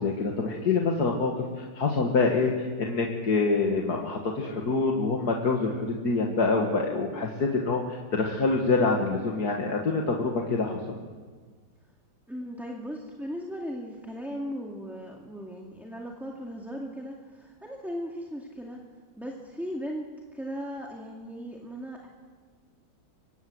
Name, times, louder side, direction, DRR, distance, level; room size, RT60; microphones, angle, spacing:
voice 1, 0.0-11.0, left 3 dB, 50° left, 1 dB, 2.2 m, -26 dB
voice 2, 12.3-18.8 19.2-22.1, equal, ahead, 0 dB, 2.1 m, -37 dB
25.0 x 21.5 x 7.9 m, 1.6 s
omnidirectional pair, 2.2 m